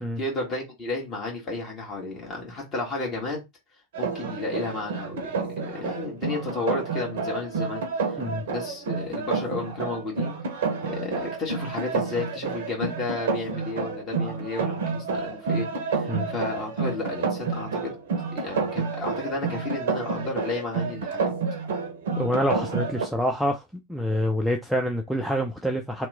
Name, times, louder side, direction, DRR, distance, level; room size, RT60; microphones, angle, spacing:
voice 1, 0.0-3.4 4.0-10.4 10.8-17.9 18.3-21.3, left 3 dB, 25° left, 1.4 m, -33 dB
sound 1, 3.9-23.1, right 4 dB, 55° right, 0.6 m, -29 dB
voice 2, 22.2-26.1, equal, ahead, 0.4 m, -27 dB
2.9 x 2.1 x 3.4 m
figure-of-eight pair, 90°, 0 cm